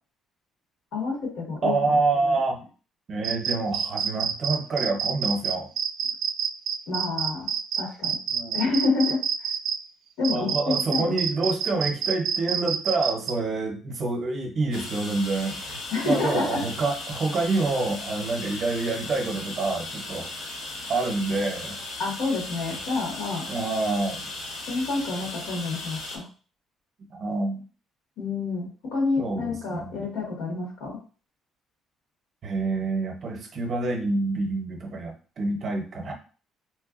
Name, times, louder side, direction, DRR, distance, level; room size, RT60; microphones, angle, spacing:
voice 1, 0.9-2.4 6.9-7.5 7.8-8.2 8.5-9.2 10.2-11.1 15.9-16.6 22.0-23.4 24.7-26.3 28.2-31.0, left 3 dB, 90° left, -3 dB, 1.6 m, -28 dB
voice 2, 1.6-2.6 3.1-5.7 8.3-8.7 10.3-20.3 20.9-21.8 23.5-24.2 27.1-27.6 29.2-29.9 32.4-36.1, right 3 dB, 35° right, 3 dB, 0.7 m, -27 dB
sound 1, 3.2-9.8 10.2-13.3, right 8 dB, 70° right, 0.3 m, -27 dB
sound 2, 14.7-26.2, left 2 dB, 70° left, 1.0 m, -37 dB
3.6 x 3.2 x 2.4 m, 0.37 s
cardioid pair, 175°, 0 cm